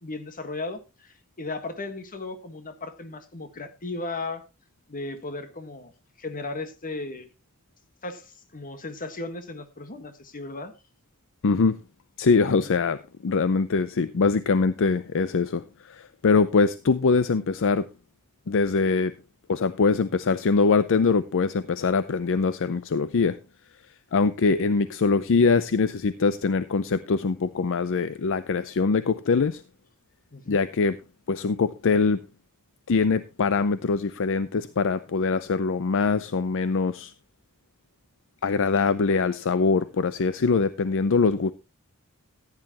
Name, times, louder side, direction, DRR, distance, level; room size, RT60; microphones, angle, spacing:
voice 1, 0.0-4.4 4.9-5.9 6.2-7.3 8.0-10.7 12.4-12.7 30.3-30.6, left 3 dB, 40° left, 9 dB, 1.5 m, -36 dB
voice 2, 11.4-11.7 12.2-13.0 13.2-17.8 18.5-19.1 19.5-23.4 24.1-29.6 30.5-31.0 31.3-32.2 32.9-37.1 38.4-41.5, left 4 dB, 60° left, 14 dB, 0.5 m, -23 dB
14.5 x 9.9 x 2.9 m, 0.26 s
head